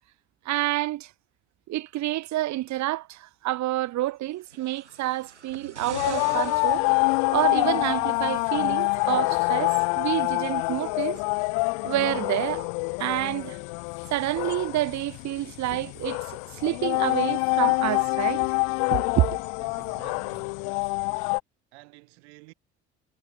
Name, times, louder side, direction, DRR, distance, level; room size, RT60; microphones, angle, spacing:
voice 1, 0.4-1.1 1.7-6.8 7.3-11.2 11.8-12.7 13.0-13.6 14.1-16.2 16.5-18.4 18.9-19.4, right 16 dB, 55° right, 1.7 m, -28 dB
sound 1, 4.3-7.7 8.6-8.7, right 6 dB, 85° right, 6.1 m, -44 dB
sound 2, 5.9-21.4, left 40 dB or more, 65° left, 0.7 m, -26 dB
voice 2, 19.6-20.6 21.7-22.5, right 28 dB, 70° right, 7.2 m, -50 dB
figure-of-eight pair, 50°, 34 cm